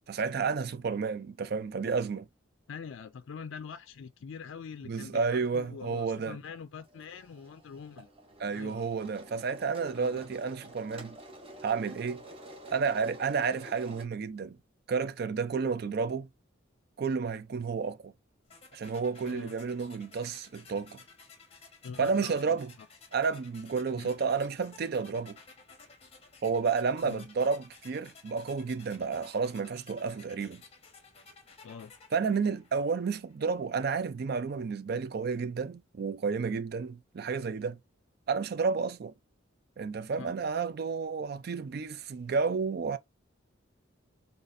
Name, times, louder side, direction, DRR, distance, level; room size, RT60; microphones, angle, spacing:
voice 1, 0.1-2.3 4.8-6.4 8.4-11.2 11.6-12.2 12.7-14.6 14.9-16.3 17.0-18.1 18.7-21.0 22.0-22.7 23.1-25.4 26.4-30.6 32.1-37.8 38.3-39.1 39.8-43.0, right 5 dB, 50° right, 0.4 m, -31 dB
voice 2, 2.7-8.1 8.5-8.8 9.9-10.3 19.2-19.5 21.8-22.9 24.0-24.1 27.0-27.3 31.6-31.9 40.2-40.3, left 6 dB, 70° left, 0.4 m, -44 dB
sound 1, 5.3-5.6 5.9-6.0 6.2-14.0, right 1 dB, 30° right, 0.9 m, -49 dB
sound 2, 18.5-33.4, left 4 dB, 30° left, 1.1 m, -55 dB
4.0 x 3.4 x 2.5 m
head